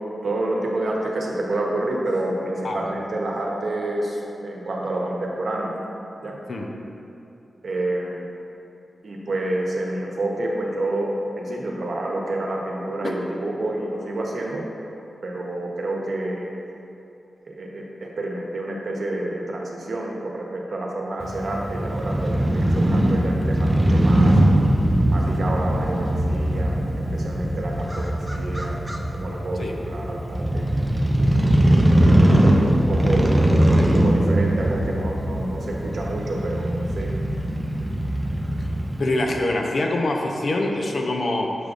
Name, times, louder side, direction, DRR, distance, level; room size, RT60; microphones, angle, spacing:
voice 1, 0.2-5.8 6.2-6.4 7.6-8.2 9.0-11.1 11.4-14.6 15.2-16.5 17.5-24.4 25.1-26.8 27.1-28.8 29.1-30.7 32.1-33.3 33.9-37.1, right 1 dB, 60° right, -1 dB, 0.9 m, -28 dB
Crow / Motorcycle, 21.2-39.1, right 1 dB, 10° right, 0.5 m, -21 dB
voice 2, 39.0-41.6, left 2 dB, 60° left, 1 dB, 0.6 m, -24 dB
6.7 x 6.2 x 2.5 m, 2.7 s
wide cardioid pair, 95°, 0 cm